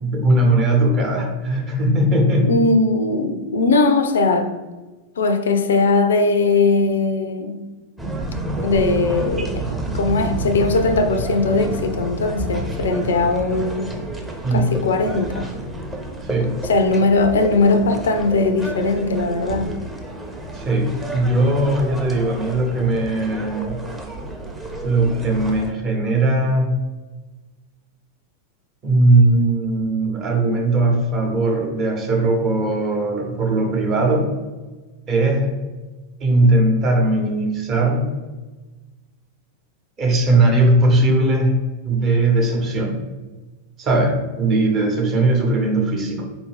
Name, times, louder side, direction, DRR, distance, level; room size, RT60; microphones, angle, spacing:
voice 1, 0.0-2.5 14.4-14.7 16.2-16.6 20.5-23.8 24.8-26.8 28.8-34.3 35.1-35.5 36.2-38.1 40.0-41.6 41.8-43.0 43.8-46.2, right 2 dB, 30° right, 0.9 m, -19 dB
voice 2, 2.4-4.5 5.2-7.6 8.6-9.6 9.9-14.0 14.5-15.5 16.6-19.7, left 3 dB, 65° left, 0.4 m, -19 dB
sound 1, 8.0-25.7, right 1 dB, 10° right, 0.7 m, -30 dB
4.4 x 2.6 x 3.3 m
figure-of-eight pair, 90°, 0 cm